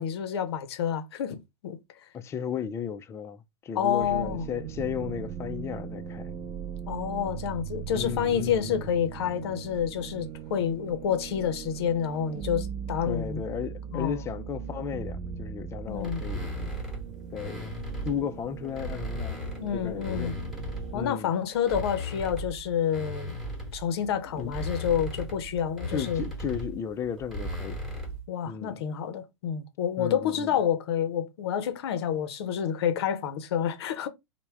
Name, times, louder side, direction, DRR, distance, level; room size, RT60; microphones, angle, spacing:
voice 1, 0.0-1.4 1.6-1.8 3.7-4.4 6.9-13.4 13.9-14.1 15.9-16.2 19.6-20.3 20.9-23.3 23.7-26.2 28.3-34.1, left 8 dB, 55° left, 0.6 m, -28 dB
voice 2, 2.1-6.3 7.9-8.9 13.0-16.8 17.3-17.7 18.0-19.4 19.7-20.3 20.9-21.3 24.3-24.6 25.9-27.8 28.5-28.8 30.0-30.5, left 8 dB, 20° left, 0.3 m, -35 dB
sound 1, 4.0-21.1, right 8 dB, 35° right, 0.7 m, -39 dB
sound 2, 16.0-18.2 18.6-21.1 21.5-28.3, equal, ahead, 1.0 m, -37 dB
3.3 x 2.1 x 3.3 m
figure-of-eight pair, 100°, 16 cm